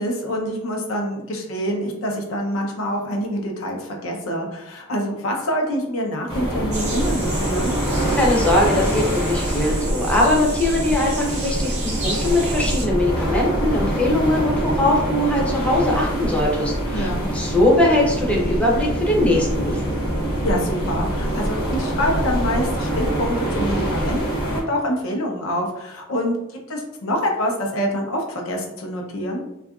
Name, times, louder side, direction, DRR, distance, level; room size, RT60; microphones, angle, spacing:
voice 1, 0.0-7.7 16.9-17.3 20.4-26.4 26.7-29.4, equal, 85° left, 1 dB, 0.6 m, -26 dB
sound 1, 6.3-24.6, right 1 dB, 50° left, 0.8 m, -24 dB
sound 2, 6.7-12.8, right 2 dB, 35° right, 0.6 m, -32 dB
voice 2, 8.1-19.9, left 1 dB, 5° left, -3 dB, 0.5 m, -21 dB
2.7 x 2.3 x 2.3 m, 0.87 s
head